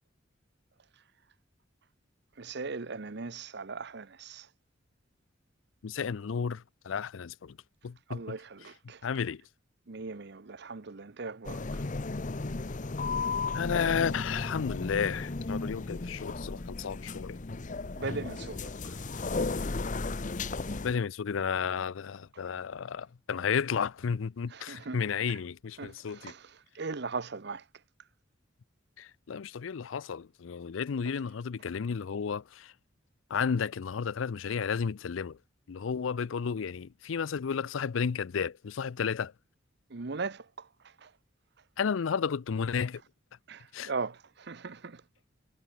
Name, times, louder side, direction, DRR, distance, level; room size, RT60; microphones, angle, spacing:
voice 1, 2.4-4.5 8.1-9.0 9.9-11.8 18.0-19.0 24.5-25.0 25.3-25.4 25.8-27.6 31.1-31.2 39.9-40.7 41.0-41.1 43.5-45.0, right 4 dB, 60° right, 0.9 m, -39 dB
voice 2, 5.8-7.6 7.8-8.4 9.0-9.4 13.5-17.4 20.8-26.3 29.0-32.7 33.3-35.4 35.7-39.3 41.8-43.0 43.7-43.9, left 6 dB, 85° left, 0.5 m, -32 dB
sound 1, 11.4-20.9, left 3 dB, 40° left, 0.8 m, -34 dB
head